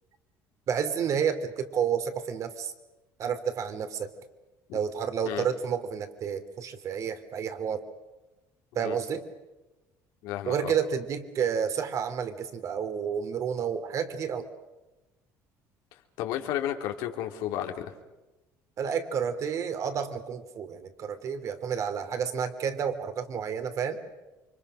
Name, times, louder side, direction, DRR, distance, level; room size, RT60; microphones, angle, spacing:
voice 1, 0.7-2.7 3.2-4.1 4.7-7.8 8.7-9.2 10.5-14.5 18.8-24.0, right 7 dB, 50° right, 9 dB, 3.0 m, -30 dB
voice 2, 10.2-10.7 16.2-17.9, left 11 dB, 80° left, 4 dB, 3.2 m, -32 dB
29.0 x 25.0 x 6.4 m, 1.1 s
cardioid pair, 125°, 7 cm